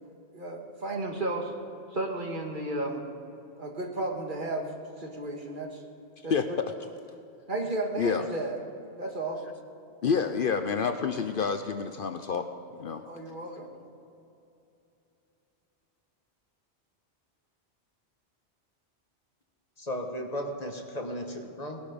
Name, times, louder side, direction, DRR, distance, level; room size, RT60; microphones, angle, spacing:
voice 1, 0.3-1.5 1.9-3.0 3.6-4.7 5.0-5.8 6.2-6.3 7.5-8.6 9.0-9.4 13.1-13.7, right 2 dB, 45° right, 1 dB, 1.8 m, -33 dB
voice 2, 6.3-6.7 8.0-8.3 10.0-12.5 12.8-13.0 13.5-13.6, left 6 dB, 55° left, 8 dB, 0.8 m, -28 dB
voice 3, 19.8-21.8, equal, 35° left, 3 dB, 1.3 m, -35 dB
18.5 x 11.5 x 5.1 m, 2.8 s
omnidirectional pair, 1.1 m